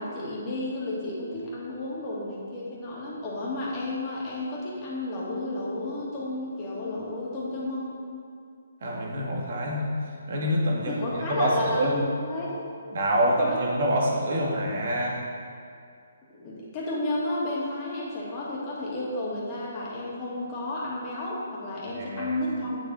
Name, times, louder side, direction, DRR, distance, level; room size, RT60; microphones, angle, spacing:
voice 1, 0.0-7.9 10.9-12.7 13.4-13.6 16.3-22.8, left 2 dB, 25° left, -7 dB, 2.3 m, -32 dB
voice 2, 8.8-9.9 10.3-11.0 11.3-11.9 12.9-15.2 21.9-22.4, right 1 dB, 55° right, -2 dB, 2.0 m, -26 dB
8.7 x 7.2 x 4.2 m, 2.4 s
hypercardioid pair, 155°, 0 cm